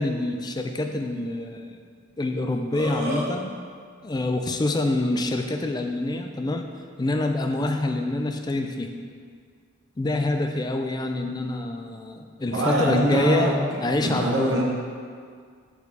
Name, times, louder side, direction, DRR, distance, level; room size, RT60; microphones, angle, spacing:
voice 1, 0.0-1.8 2.2-3.5 4.0-6.7 7.0-8.9 10.0-13.5 13.8-14.6, left 2 dB, 20° left, 5 dB, 0.3 m, -26 dB
Burping eructation, 2.1-2.2 2.5-3.3, equal, 50° right, 1.2 m, -31 dB
voice 2, 12.5-13.5 14.0-14.6, right 1 dB, 70° right, -4 dB, 1.3 m, -23 dB
6.8 x 4.4 x 4.1 m, 2.1 s
head